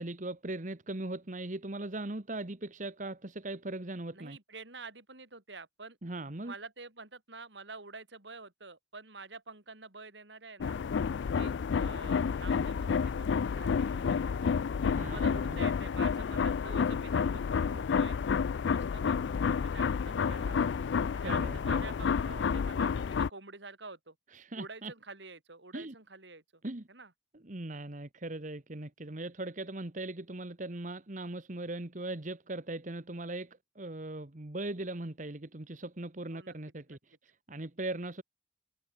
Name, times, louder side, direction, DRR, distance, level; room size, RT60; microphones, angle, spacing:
voice 1, 0.0-4.4 6.0-6.5 14.8-15.6 21.2-21.9 24.3-24.9 25.7-25.9 26.6-26.9 27.3-38.2, right 2 dB, 45° right, 1.4 m, -39 dB
voice 2, 4.1-6.0 6.4-10.8 11.3-14.5 15.0-18.2 18.7-20.7 21.1-24.1 24.6-26.6 26.9-27.1 36.3-36.5, right 3 dB, 75° right, 4.9 m, -48 dB
sound 1, 10.6-23.3, left 6 dB, 75° left, 0.4 m, -30 dB
head